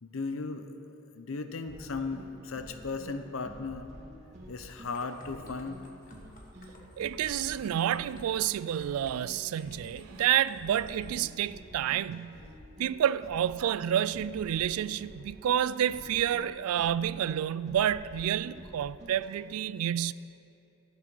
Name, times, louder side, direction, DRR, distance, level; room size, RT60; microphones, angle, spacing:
voice 1, 0.0-0.8 1.1-3.9 4.5-5.9, left 4 dB, 65° left, 0.7 m, -36 dB
sound 1, 1.7-19.3, equal, 35° right, 2.3 m, -49 dB
sound 2, 4.7-11.1, left 2 dB, 40° left, 1.3 m, -55 dB
voice 2, 7.0-12.4 12.8-20.1, right 10 dB, 85° right, 0.3 m, -29 dB
13.5 x 7.3 x 6.1 m
head